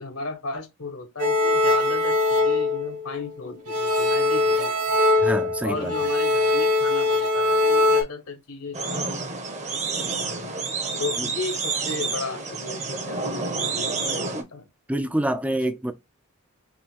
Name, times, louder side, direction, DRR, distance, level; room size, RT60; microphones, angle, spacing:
voice 1, 0.0-5.0 5.6-9.0 10.2-10.5 11.0-14.7, left 3 dB, 75° left, 1.3 m, -35 dB
sound 1, 1.2-3.3 3.7-8.0, left 2 dB, 85° right, 1.7 m, -22 dB
voice 2, 5.2-5.9 11.2-11.3 14.3-14.5 14.9-15.9, right 1 dB, 5° right, 0.4 m, -26 dB
sound 2, 8.7-14.4, right 4 dB, 30° right, 0.7 m, -29 dB
5.5 x 2.6 x 2.9 m
head